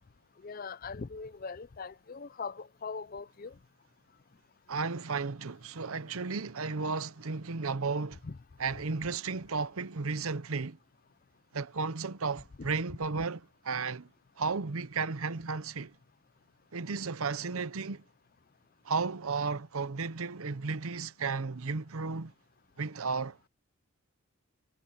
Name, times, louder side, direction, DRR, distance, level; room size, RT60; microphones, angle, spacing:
voice 1, 0.4-3.5 8.2-8.4, left 4 dB, 40° left, 0.5 m, -41 dB
voice 2, 4.7-8.2 8.6-10.8 11.5-14.1 14.4-15.9 16.7-18.0 18.8-22.3 22.8-23.4, right 4 dB, 75° right, 0.8 m, -34 dB
head